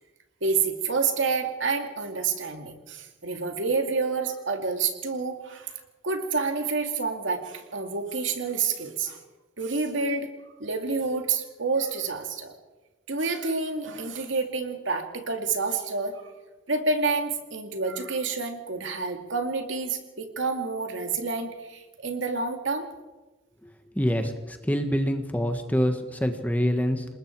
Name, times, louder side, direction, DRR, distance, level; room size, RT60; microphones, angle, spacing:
voice 1, 0.4-5.7 6.0-9.2 9.6-10.3 10.6-12.5 13.1-16.2 16.7-22.9, right 4 dB, 75° right, 5 dB, 2.5 m, -28 dB
voice 2, 23.6-27.1, equal, 10° left, 6 dB, 1.3 m, -26 dB
27.5 x 20.0 x 4.6 m, 1.1 s
head